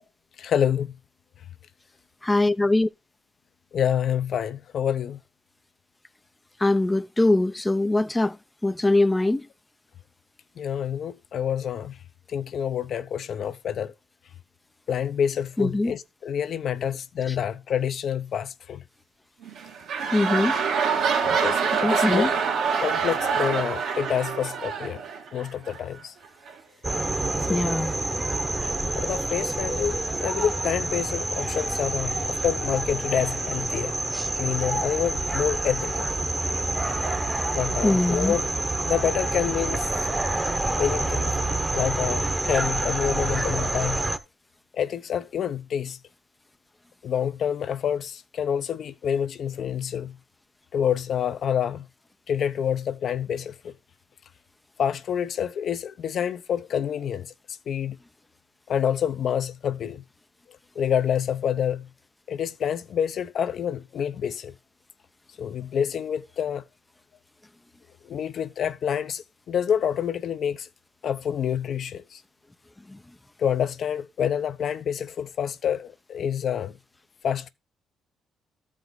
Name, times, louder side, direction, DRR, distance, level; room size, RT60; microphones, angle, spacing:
voice 1, 0.4-0.9 3.7-5.2 10.6-11.9 12.3-13.9 14.9-18.8 21.2-22.4 22.8-25.0 25.3-26.1 27.5-27.7 28.9-33.9 34.4-36.1 37.5-38.5 38.8-39.9 40.8-41.3 41.7-44.1 44.7-46.0 47.0-50.2 50.7-51.8 52.3-53.7 54.8-57.3 57.7-58.0 58.7-60.0 60.8-61.9 62.3-64.5 65.4-66.6 68.0-70.7 71.0-72.2 73.4-76.7 77.2-77.5, left 8 dB, 65° left, 0.7 m, -27 dB
voice 2, 2.2-2.9 6.6-8.4 8.6-9.4 15.6-15.9 20.1-20.5 21.8-22.3 27.5-27.9 37.8-38.3, left 2 dB, 10° left, 0.5 m, -22 dB
sound 1, 19.4-25.8 26.5-26.6, right 6 dB, 75° right, 2.2 m, -26 dB
sound 2, 26.8-44.2, right 2 dB, 20° right, 1.0 m, -27 dB
13.0 x 4.9 x 3.9 m
cardioid pair, 90°, 0 cm